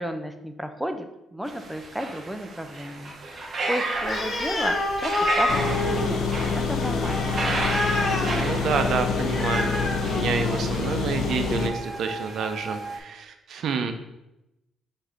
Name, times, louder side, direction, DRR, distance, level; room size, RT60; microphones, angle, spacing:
voice 1, 0.0-7.4, equal, 5° right, 7 dB, 0.5 m, -33 dB
sound 1, 1.5-13.0, right 3 dB, 45° right, 0.8 m, -33 dB
Animal, 4.0-10.8, left 2 dB, 40° left, 1.2 m, -28 dB
sound 2, 5.5-11.7, left 5 dB, 80° left, 0.4 m, -27 dB
voice 2, 8.2-13.9, right 5 dB, 70° right, 7 dB, 0.5 m, -29 dB
4.7 x 2.6 x 4.3 m, 0.92 s
cardioid pair, 90°, 0 cm